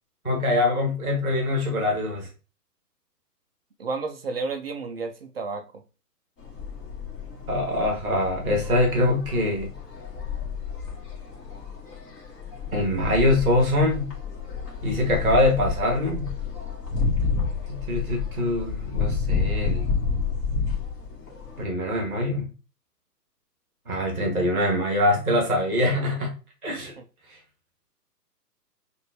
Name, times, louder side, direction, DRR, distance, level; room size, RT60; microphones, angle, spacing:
voice 1, 0.2-2.3 7.5-9.7 12.7-14.1 14.8-16.3 17.7-19.9 21.6-22.5 23.9-26.3 26.6-26.9, left 1 dB, ahead, -18 dB, 0.5 m, -23 dB
voice 2, 3.8-5.8, right 4 dB, 40° right, 6 dB, 0.6 m, -31 dB
sound 1, 6.4-21.6, left 5 dB, 30° left, 1.9 m, -30 dB
6.4 x 2.6 x 3.1 m, 0.34 s
figure-of-eight pair, 135°, 49 cm